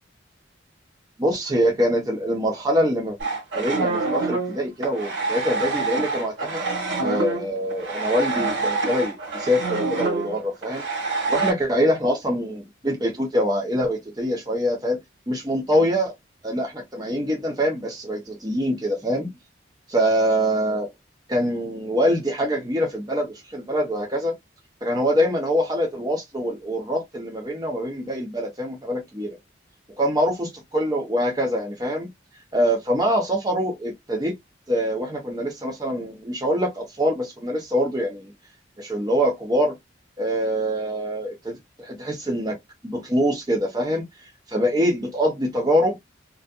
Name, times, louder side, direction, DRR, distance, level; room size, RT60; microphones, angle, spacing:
voice 1, 1.2-3.2 3.5-6.6 7.0-10.8 11.3-15.0 15.3-16.1 16.4-19.3 19.9-20.9 21.3-24.3 24.8-29.4 30.0-32.1 32.5-34.4 34.7-38.3 38.8-39.7 40.2-42.6 42.8-44.1 44.5-46.0, equal, 20° right, 0.8 m, -24 dB
sound 1, 3.2-11.5, right 3 dB, 85° right, 1.3 m, -26 dB
2.7 x 2.4 x 2.2 m
head